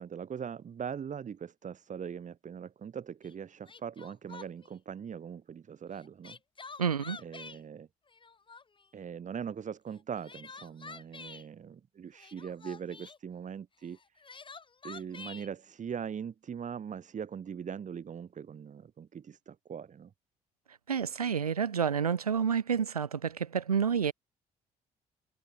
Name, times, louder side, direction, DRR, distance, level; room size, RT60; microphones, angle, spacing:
voice 1, 0.0-6.4 7.2-7.9 8.9-14.2 14.8-20.1, right 7 dB, 40° right, 3.6 m, -41 dB
Crying sobbing, 3.2-3.3 3.7-4.7 5.9-7.6 8.1-8.9 9.9-11.5 12.1-13.2 13.9-15.5, left 4 dB, 25° left, 2.1 m, -48 dB
voice 2, 6.8-7.2 20.9-24.1, right 7 dB, 90° right, 0.8 m, -29 dB
figure-of-eight pair, 50°, 19 cm